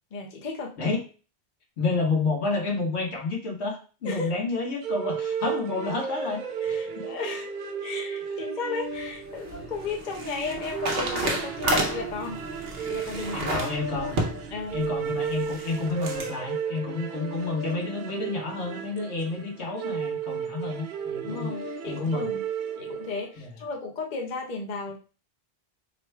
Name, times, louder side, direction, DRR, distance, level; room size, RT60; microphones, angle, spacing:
voice 1, 0.1-0.7 4.0-4.3 6.6-7.5 7.8-12.4 12.8-13.5 14.5-14.8 21.2-22.4 22.8-25.0, left 4 dB, 45° left, 0 dB, 0.8 m, -35 dB
voice 2, 1.8-7.4 13.3-14.1 14.7-21.5 21.9-22.3 23.4-23.5, left 3 dB, 70° left, -1 dB, 1.5 m, -30 dB
sound 1, 4.8-23.3, right 6 dB, 55° right, 0.6 m, -34 dB
sound 2, 9.0-16.3, right 1 dB, 85° right, 1.2 m, -32 dB
3.7 x 2.2 x 4.4 m, 0.35 s
omnidirectional pair, 1.2 m